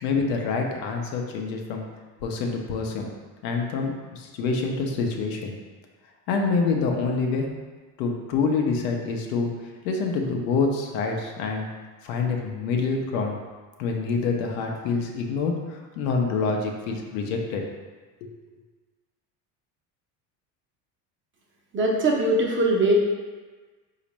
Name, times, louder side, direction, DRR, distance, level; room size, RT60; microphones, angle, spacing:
voice 1, 0.0-1.8 2.2-3.1 3.4-5.5 6.3-7.5 8.0-9.5 9.8-11.7 12.0-13.4 13.8-17.6 18.2-18.3, left 4 dB, 75° left, 2 dB, 0.7 m, -26 dB
voice 2, 21.7-23.0, right 1 dB, 25° right, -1 dB, 0.6 m, -21 dB
4.1 x 2.5 x 3.0 m, 1.3 s
hypercardioid pair, 75°, 49 cm